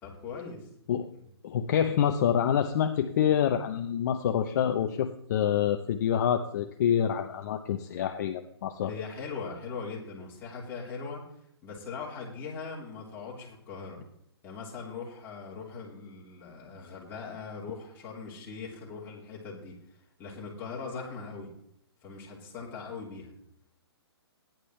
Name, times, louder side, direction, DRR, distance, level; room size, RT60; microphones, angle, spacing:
voice 1, 0.0-0.9 1.2-1.3 8.8-11.2 11.6-14.0 14.4-19.8 20.2-21.5 22.0-23.3, left 5 dB, 15° left, -5 dB, 3.4 m, -40 dB
voice 2, 1.4-8.9, left 9 dB, 45° left, 6 dB, 0.8 m, -27 dB
14.5 x 10.5 x 3.3 m, 0.72 s
hypercardioid pair, 155°, 14 cm